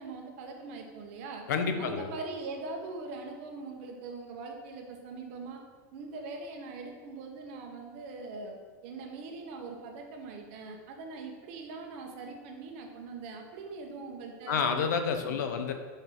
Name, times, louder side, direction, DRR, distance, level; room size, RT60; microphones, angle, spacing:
voice 1, 0.0-1.4 1.8-5.6 5.9-14.8 15.2-15.6, right 3 dB, 45° right, 2 dB, 1.0 m, -42 dB
voice 2, 1.5-2.1 14.5-15.7, left 6 dB, 80° left, 6 dB, 0.8 m, -29 dB
5.5 x 4.0 x 5.9 m, 1.5 s
supercardioid pair, 175°, 9 cm